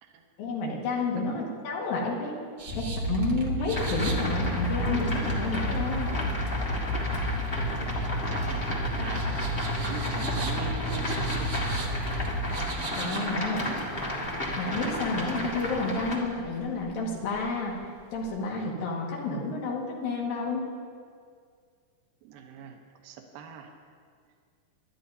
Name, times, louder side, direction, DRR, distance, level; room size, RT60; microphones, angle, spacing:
voice 1, 0.4-2.3 2.8-6.1 13.0-13.8 14.6-17.7 18.1-20.7, left 3 dB, 90° left, -2 dB, 3.5 m, -30 dB
voice 2, 1.2-1.7 7.4-9.5 9.8-11.6 13.1-14.0 22.2-23.7, right 5 dB, 80° right, 4 dB, 2.6 m, -43 dB
sound 1, 2.6-18.4, right 3 dB, 50° right, 1.6 m, -44 dB
sound 2, 2.7-12.6, equal, 70° left, 1.6 m, -31 dB
sound 3, 3.7-16.2, left 1 dB, 50° left, 0.6 m, -33 dB
23.5 x 11.5 x 2.7 m, 2.1 s
omnidirectional pair, 4.0 m